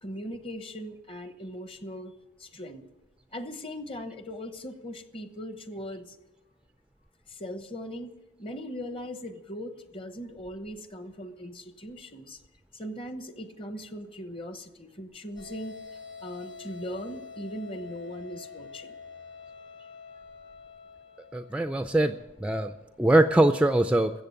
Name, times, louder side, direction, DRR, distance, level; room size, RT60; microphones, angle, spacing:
voice 1, 0.0-2.1 2.4-2.9 3.3-6.2 7.3-12.4 12.7-15.8 16.2-19.0 22.6-22.7, equal, 30° left, 10 dB, 1.0 m, -39 dB
sound 1, 15.4-22.3, left 5 dB, 65° left, 3.7 m, -46 dB
voice 2, 21.3-22.7 23.0-24.1, right 1 dB, 5° right, 9 dB, 0.4 m, -22 dB
13.5 x 8.1 x 9.6 m, 1.0 s
head